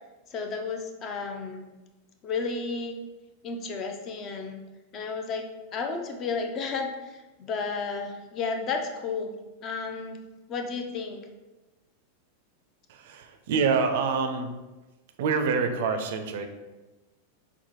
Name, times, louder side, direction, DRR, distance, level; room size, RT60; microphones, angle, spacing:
voice 1, 0.3-1.6 2.2-3.0 3.4-4.6 4.9-9.3 9.6-10.2 10.5-11.2, left 4 dB, 35° left, 4 dB, 0.4 m, -32 dB
voice 2, 12.9-14.5 15.2-16.5, right 5 dB, 55° right, 6 dB, 0.4 m, -26 dB
5.4 x 2.1 x 2.9 m, 1.1 s
figure-of-eight pair, 90°, 0 cm